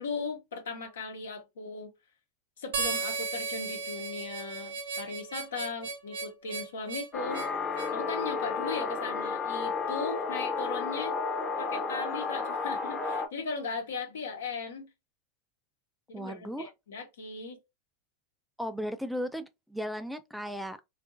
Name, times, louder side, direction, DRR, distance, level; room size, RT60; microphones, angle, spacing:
voice 1, 0.0-1.9 2.6-7.5 7.9-11.2 11.6-14.9 16.1-17.6, left 4 dB, 85° left, 1.0 m, -38 dB
Harmonica, 2.7-8.0, right 5 dB, 75° right, 0.7 m, -35 dB
sound 1, 7.1-13.3, left 4 dB, 20° left, 0.7 m, -32 dB
voice 2, 16.1-16.7 18.6-20.8, equal, ahead, 0.3 m, -36 dB
2.7 x 2.5 x 2.5 m
hypercardioid pair, 110°, 0 cm